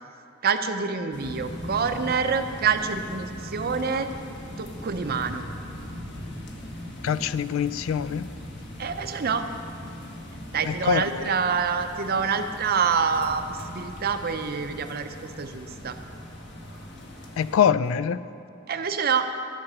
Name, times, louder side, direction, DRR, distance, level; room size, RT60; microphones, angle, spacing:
voice 1, 0.4-4.1 4.6-5.4 8.8-9.4 10.5-16.0 18.7-19.3, right 6 dB, 50° right, 8 dB, 0.6 m, -26 dB
sound 1, 1.1-17.6, left 1 dB, 60° left, 1.5 m, -40 dB
voice 2, 7.0-8.3 10.6-11.3 17.4-18.2, left 8 dB, 75° left, 15 dB, 0.3 m, -24 dB
11.5 x 5.8 x 7.2 m, 2.7 s
head